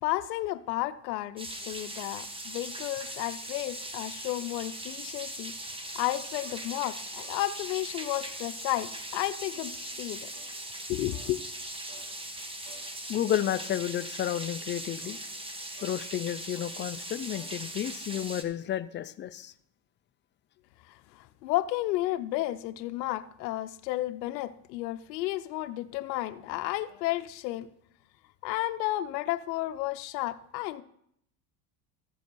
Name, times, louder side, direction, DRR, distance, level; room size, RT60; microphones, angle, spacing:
voice 1, 0.0-5.5 5.9-9.7 10.0-10.3 10.9-11.4 20.9-27.7 28.4-30.8, left 16 dB, 90° left, 10 dB, 0.7 m, -32 dB
sound 1, 1.4-18.4, right 1 dB, 10° right, 1.1 m, -40 dB
sound 2, 6.4-6.7 7.2-7.4 8.0-8.2 8.7-9.0 9.5-9.8 10.3-10.6 11.1-11.4 11.9-12.1 12.6-12.9 13.4-13.7 14.2-14.4 15.0-15.3 15.8-16.0 16.5-16.8 17.3-17.6 18.1-18.3, right 4 dB, 60° right, 4.9 m, -55 dB
voice 2, 13.1-15.2 15.8-19.5, left 11 dB, 25° left, 13 dB, 0.4 m, -31 dB
14.5 x 7.0 x 4.5 m, 0.71 s
supercardioid pair, 110°, 49 cm